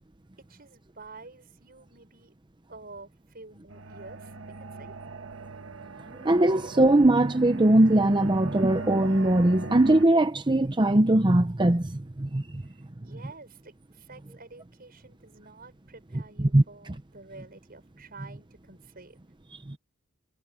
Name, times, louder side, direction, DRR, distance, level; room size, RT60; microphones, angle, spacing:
voice 1, 0.4-2.3 2.7-4.3 4.8-4.9 13.0-19.2, right 3 dB, 50° right, 6.3 m, -49 dB
sound 1, 3.7-10.1, right 3 dB, 65° right, 1.7 m, -40 dB
voice 2, 6.2-12.6 16.4-16.6, right 1 dB, 25° right, 0.7 m, -21 dB
head